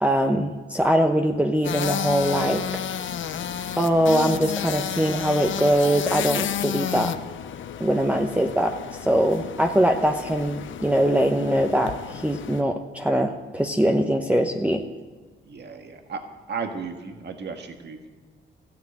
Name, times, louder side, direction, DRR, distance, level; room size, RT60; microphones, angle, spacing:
voice 1, 0.0-2.6 3.8-7.1 7.8-8.8 9.0-14.8, right 1 dB, 5° right, 3 dB, 1.0 m, -22 dB
sound 1, 1.6-12.6, left 9 dB, 70° left, 0.8 m, -31 dB
voice 2, 15.4-16.2 16.5-18.1, right 5 dB, 55° right, 5 dB, 1.7 m, -34 dB
14.5 x 9.6 x 8.8 m, 1.4 s
cardioid pair, 80°, 21 cm